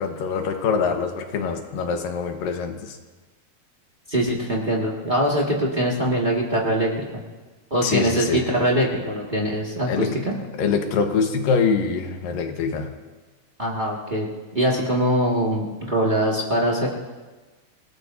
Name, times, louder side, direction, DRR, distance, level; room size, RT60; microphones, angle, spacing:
voice 1, 0.0-3.0 7.8-8.4 9.9-12.9, left 5 dB, 70° left, 4 dB, 2.8 m, -24 dB
voice 2, 4.1-7.1 7.7-10.3 13.6-14.3 14.5-16.9, right 1 dB, 50° right, -4 dB, 0.5 m, -23 dB
28.0 x 18.5 x 2.7 m, 1.3 s
omnidirectional pair, 4.4 m